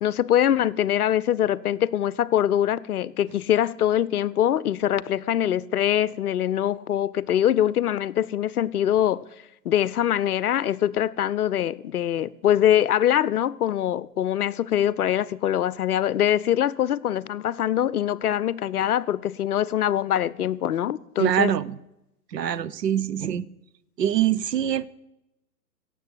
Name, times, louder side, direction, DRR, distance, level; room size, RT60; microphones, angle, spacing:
voice 1, 0.0-9.2 9.6-21.5, left 11 dB, 60° left, 0.7 m, -23 dB
voice 2, 21.2-21.8 22.3-23.5 24.0-24.9, right 10 dB, 70° right, 0.9 m, -24 dB
17.0 x 7.7 x 8.1 m
hypercardioid pair, 130°, 50 cm